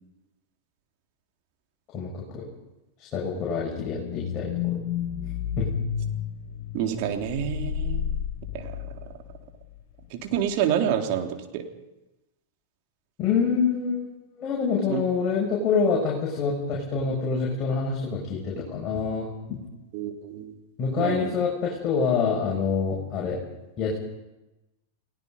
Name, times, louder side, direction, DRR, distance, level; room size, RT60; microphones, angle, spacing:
voice 1, 1.9-2.5 3.0-4.8 5.6-5.7 13.2-14.1 14.4-19.6 20.8-23.4 23.8-24.0, left 5 dB, 35° left, -3 dB, 6.4 m, -26 dB
sound 1, 3.8-9.4 9.8-9.9, left 9 dB, 55° left, 4.8 m, -31 dB
voice 2, 6.7-8.1 8.5-8.7 10.1-11.6 14.9-15.0 19.9-20.5 21.0-21.3, right 9 dB, 50° right, 4 dB, 3.3 m, -28 dB
30.0 x 19.0 x 5.4 m, 0.99 s
figure-of-eight pair, 95°, 0 cm